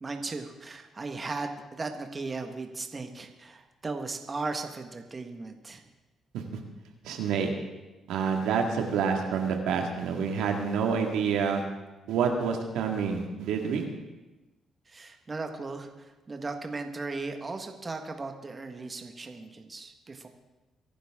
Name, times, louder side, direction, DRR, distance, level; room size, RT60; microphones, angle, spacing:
voice 1, 0.0-5.8 14.9-20.3, right 3 dB, 30° right, 5 dB, 1.5 m, -37 dB
voice 2, 7.0-7.5 8.1-11.6 12.1-13.9, right 6 dB, 90° right, 3 dB, 2.0 m, -28 dB
23.5 x 11.5 x 3.7 m, 1.1 s
cardioid pair, 90°, 0 cm